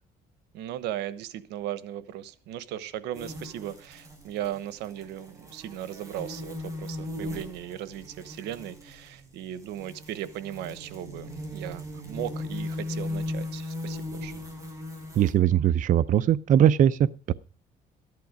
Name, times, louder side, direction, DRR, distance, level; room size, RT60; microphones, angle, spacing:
voice 1, 0.5-14.3, right 12 dB, 90° right, 15 dB, 1.1 m, -37 dB
sound 1, 3.1-15.3, left 1 dB, 20° right, 6.3 m, -38 dB
voice 2, 15.2-17.3, right 10 dB, 50° right, 13 dB, 0.6 m, -21 dB
14.0 x 11.0 x 5.2 m, 0.38 s
cardioid pair, 110°, 17 cm